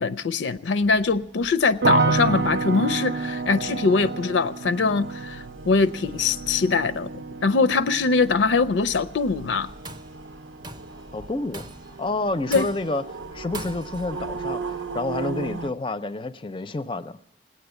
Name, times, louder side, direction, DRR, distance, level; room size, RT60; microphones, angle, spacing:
voice 1, 0.0-9.7 12.5-12.7, left 4 dB, 80° left, 0.5 m, -22 dB
sound 1, 0.8-15.7, right 4 dB, 90° right, 0.8 m, -39 dB
sound 2, 1.8-12.9 13.2-13.9, right 3 dB, 60° right, 0.6 m, -30 dB
Tools, 9.6-10.2 10.6-11.0 11.5-12.0 12.5-13.0 13.5-14.1, right 2 dB, 20° right, 0.6 m, -39 dB
voice 2, 11.1-11.7 12.0-13.0 13.3-17.2, left 2 dB, 25° left, 0.5 m, -29 dB
19.0 x 8.8 x 8.1 m
head